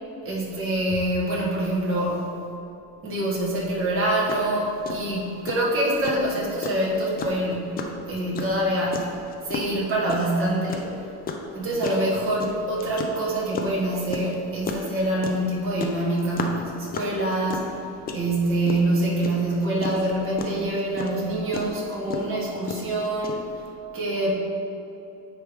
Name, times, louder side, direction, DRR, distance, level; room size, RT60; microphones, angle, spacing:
voice 1, 0.2-2.4 3.0-9.2 9.4-11.0 11.5-17.8 18.1-23.5 23.9-24.3, right 1 dB, 35° right, -5 dB, 1.4 m, -25 dB
sound 1, 3.9-4.0 4.3-4.5 4.9-23.7, left 4 dB, 25° left, 0.3 m, -33 dB
9.1 x 3.2 x 3.4 m, 2.8 s
cardioid pair, 145°, 38 cm